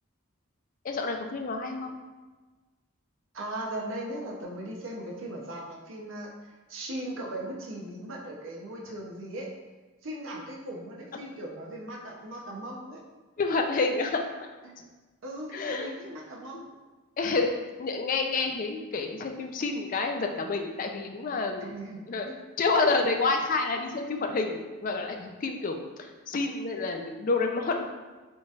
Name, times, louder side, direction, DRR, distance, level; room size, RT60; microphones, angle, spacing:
voice 1, 0.8-2.0 13.4-14.5 15.5-15.9 17.2-17.5 17.8-21.7 22.1-22.3 22.6-27.8, left 3 dB, 40° left, 4 dB, 0.4 m, -29 dB
voice 2, 3.3-6.3 6.7-9.5 10.0-13.0 14.6-14.8 15.2-16.7 21.6-22.0, right 1 dB, 65° right, -2 dB, 0.7 m, -38 dB
3.9 x 3.8 x 2.4 m, 1.3 s
head